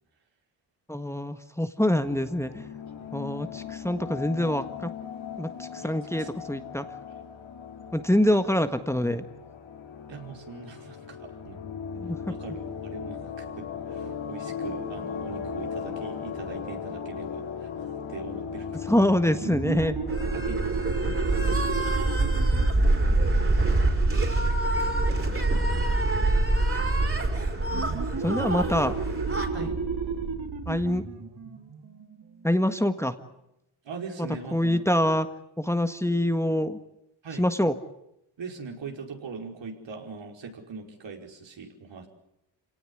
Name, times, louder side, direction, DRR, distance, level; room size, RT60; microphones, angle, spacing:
voice 1, 0.9-2.6 3.1-4.9 5.4-6.8 7.9-9.2 11.9-12.3 18.9-20.0 28.2-28.9 30.7-31.0 32.4-33.1 34.5-35.3 35.6-36.8 37.4-37.7, left 1 dB, 5° left, 9 dB, 1.6 m, -25 dB
sound 1, 2.0-20.4, left 6 dB, 70° left, 4.0 m, -38 dB
voice 2, 5.8-6.3 10.1-11.6 12.3-17.7 18.1-18.7 20.3-20.6 21.4-21.7 29.5-29.8 33.8-34.8 37.2-37.5 38.4-42.1, right 5 dB, 65° right, 2 dB, 5.1 m, -41 dB
sound 2, 19.3-24.7 27.7-33.0, right 4 dB, 50° right, 3.8 m, -33 dB
sound 3, 20.1-29.5, right 2 dB, 25° right, 5.0 m, -25 dB
27.0 x 18.0 x 9.9 m, 0.84 s
cardioid pair, 75°, 47 cm